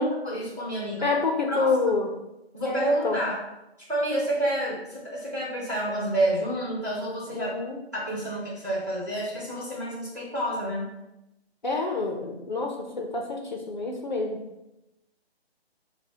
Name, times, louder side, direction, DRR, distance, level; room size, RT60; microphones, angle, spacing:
voice 1, 0.2-1.2 1.5-2.0 2.5-3.4 3.9-7.5 7.9-10.9, right 1 dB, 15° right, -9 dB, 0.7 m, -29 dB
voice 2, 1.0-2.1 2.7-3.2 7.3-7.8 11.6-14.4, left 3 dB, 45° left, 1 dB, 0.4 m, -27 dB
5.0 x 2.1 x 2.7 m, 0.92 s
hypercardioid pair, 165°, 32 cm